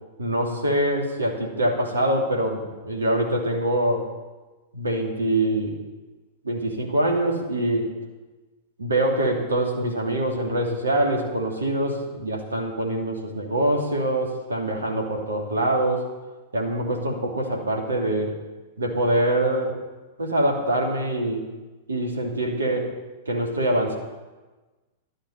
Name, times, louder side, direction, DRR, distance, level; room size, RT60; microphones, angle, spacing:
voice 1, 0.2-4.1 4.7-5.8 6.4-7.9 8.8-16.1 16.5-18.4 18.8-19.8 20.2-21.5 21.9-23.0 23.2-24.0, right 1 dB, 75° right, 0 dB, 3.1 m, -24 dB
13.0 x 11.5 x 6.8 m, 1.2 s
figure-of-eight pair, 100°, 0 cm